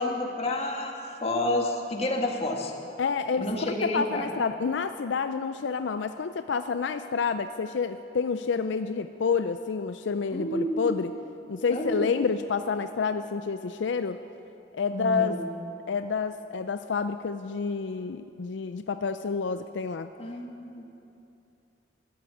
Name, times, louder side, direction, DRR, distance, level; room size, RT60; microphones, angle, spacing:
voice 1, 0.0-2.7 3.4-4.3 10.3-11.1 11.7-12.1 14.9-15.4 20.2-20.8, left 1 dB, 35° left, 1 dB, 1.8 m, -30 dB
voice 2, 3.0-3.5 3.8-11.1 11.5-14.2 14.7-15.4 15.9-20.1, left 5 dB, 80° left, 10 dB, 0.4 m, -29 dB
14.0 x 12.0 x 8.4 m, 2.7 s
head